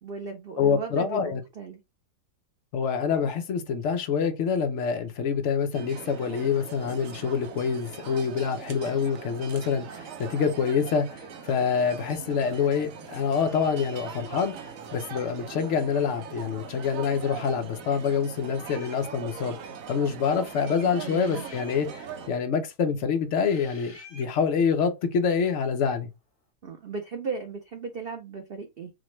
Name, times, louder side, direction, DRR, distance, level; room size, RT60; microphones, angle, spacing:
voice 1, 0.0-1.8 20.9-21.5 26.6-28.9, right 4 dB, 80° right, 0.5 m, -36 dB
voice 2, 0.6-1.4 2.7-19.6 19.9-26.1, left 6 dB, 60° left, 0.7 m, -26 dB
sound 1, 5.7-22.3, right 6 dB, 65° right, 0.9 m, -41 dB
sound 2, 18.6-19.0 20.5-21.8 23.4-24.3, left 3 dB, 40° left, 1.7 m, -48 dB
5.0 x 2.2 x 3.0 m
omnidirectional pair, 1.8 m